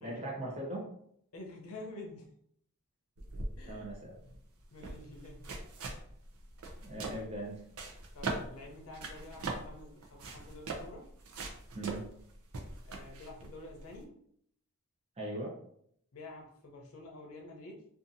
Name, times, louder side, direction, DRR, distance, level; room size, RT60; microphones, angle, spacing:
voice 1, 0.0-0.9 3.7-4.1 6.8-7.6 11.7-12.1 15.2-15.5, right 1 dB, 30° right, -4 dB, 0.8 m, -39 dB
voice 2, 1.3-2.3 3.6-4.4 4.7-5.5 8.1-11.1 12.9-14.2 16.1-17.9, left 2 dB, 70° left, 1 dB, 0.7 m, -49 dB
sound 1, 3.2-14.0, right 3 dB, 65° right, 0.5 m, -42 dB
2.7 x 2.5 x 2.6 m, 0.68 s
head